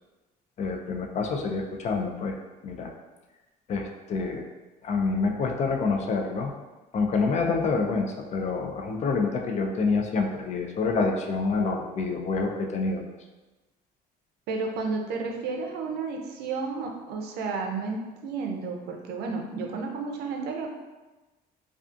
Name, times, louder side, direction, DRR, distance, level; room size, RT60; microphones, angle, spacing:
voice 1, 0.6-2.4 2.6-2.9 3.7-4.5 4.8-6.5 6.9-13.0, left 4 dB, 40° left, 2 dB, 0.4 m, -27 dB
voice 2, 14.5-20.7, right 4 dB, 75° right, 2 dB, 0.5 m, -32 dB
2.4 x 2.3 x 2.5 m, 1.1 s
cardioid pair, 110°, 17 cm